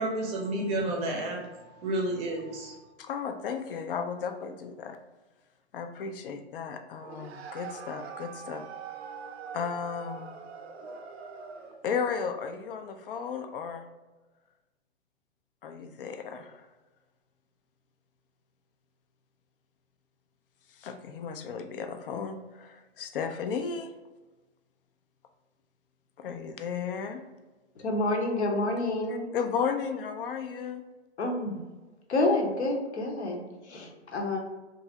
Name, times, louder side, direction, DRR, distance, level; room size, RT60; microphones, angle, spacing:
voice 1, 0.0-2.8, right 1 dB, 20° right, -1 dB, 0.6 m, -31 dB
voice 2, 3.0-5.0 5.7-8.6 9.5-10.3 11.8-13.9 15.6-16.7 20.8-23.9 26.2-27.2 29.3-30.8, left 6 dB, 50° left, 7 dB, 0.4 m, -34 dB
sound 1, 7.0-11.9, right 6 dB, 65° right, 0.5 m, -43 dB
voice 3, 27.8-29.3 31.2-31.6 32.1-34.4, left 2 dB, 70° left, 1 dB, 0.8 m, -28 dB
3.0 x 2.5 x 2.7 m, 1.2 s
figure-of-eight pair, 110°, 35 cm